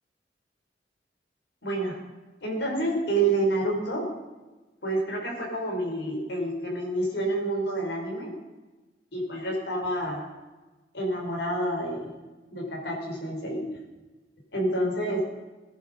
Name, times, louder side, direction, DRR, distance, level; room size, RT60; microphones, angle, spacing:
voice 1, 1.6-2.0 2.4-4.1 4.8-8.3 9.1-10.3 10.9-12.1 12.5-13.6 14.5-15.2, right 2 dB, 70° left, -1 dB, 5.2 m, -28 dB
19.0 x 11.0 x 5.3 m, 1.2 s
head